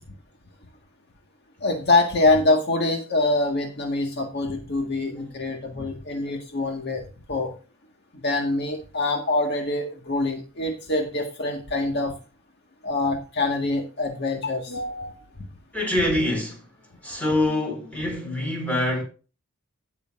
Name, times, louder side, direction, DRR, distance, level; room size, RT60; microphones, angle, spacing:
voice 1, 1.6-7.0 7.3-7.5 8.1-12.1 12.8-15.2, left 2 dB, 55° left, 1.8 m, -25 dB
voice 2, 5.1-5.9 15.7-16.6 17.0-19.0, left 1 dB, 5° left, 5.0 m, -26 dB
17.0 x 6.7 x 2.6 m
head